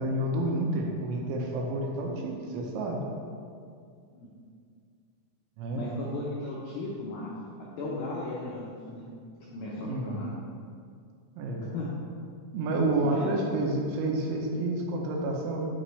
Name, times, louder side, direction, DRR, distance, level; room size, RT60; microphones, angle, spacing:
voice 1, 0.0-3.0 5.6-5.8 9.9-10.2 11.4-11.6 12.5-15.6, right 2 dB, 80° right, 0 dB, 3.2 m, -29 dB
voice 2, 5.7-7.3 7.8-9.1 9.5-10.3 11.7-11.9 12.9-13.3, left 2 dB, 85° left, -5 dB, 2.1 m, -36 dB
10.0 x 5.1 x 3.3 m, 2.3 s
omnidirectional pair, 5.4 m